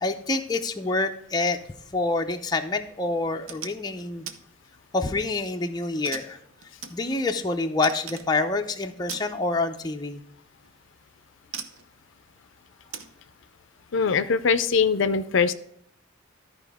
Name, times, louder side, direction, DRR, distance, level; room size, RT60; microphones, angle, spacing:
voice 1, 0.0-1.6 1.9-4.3 4.9-6.4 6.9-10.2, left 3 dB, 20° left, 4 dB, 0.5 m, -27 dB
sound 1, 3.5-3.8 4.3-4.4 4.8-5.3 6.0-7.4 7.8-8.3 9.1-9.3 10.6-10.7 11.5-11.9 12.9-13.1, right 7 dB, 85° right, 0.8 m, -38 dB
voice 2, 13.9-15.5, left 5 dB, 65° left, 12 dB, 0.5 m, -22 dB
13.0 x 4.9 x 3.5 m, 0.71 s
head